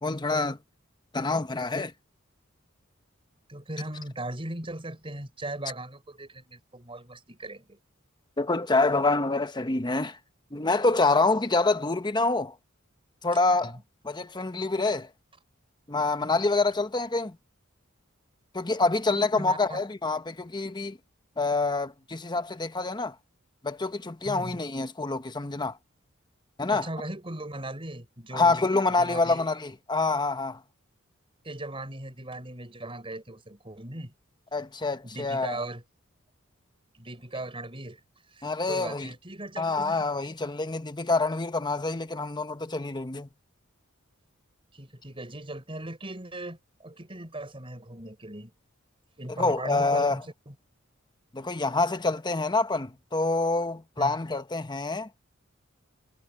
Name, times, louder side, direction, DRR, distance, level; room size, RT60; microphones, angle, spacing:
voice 1, 0.0-0.6 1.1-1.9 8.4-10.2 10.5-12.6 13.2-13.7 14.0-15.1 15.9-17.4 18.5-21.0 21.4-23.2 23.6-25.8 26.6-26.9 28.3-30.6 34.5-35.6 38.4-39.1 39.6-43.3 49.3-50.2 51.3-55.1, left 3 dB, 20° left, 0.9 m, -26 dB
voice 2, 3.5-7.8 13.6-13.8 19.4-19.8 24.2-24.6 26.7-28.6 29.0-29.5 31.4-34.1 35.0-35.8 36.9-38.0 38.3-40.0 44.7-48.5 49.2-50.5 54.0-54.2, right 1 dB, 25° right, 5.1 m, -38 dB
head